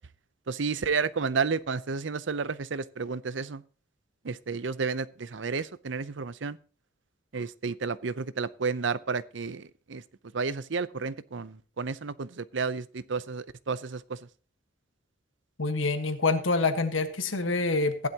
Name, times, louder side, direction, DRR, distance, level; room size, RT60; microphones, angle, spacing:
voice 1, 0.5-3.6 4.2-6.6 7.3-9.6 9.9-10.0 10.3-14.2, right 5 dB, 70° right, 17 dB, 0.7 m, -31 dB
voice 2, 15.6-18.1, left 3 dB, 80° left, 8 dB, 1.5 m, -26 dB
15.5 x 11.0 x 2.9 m, 0.38 s
head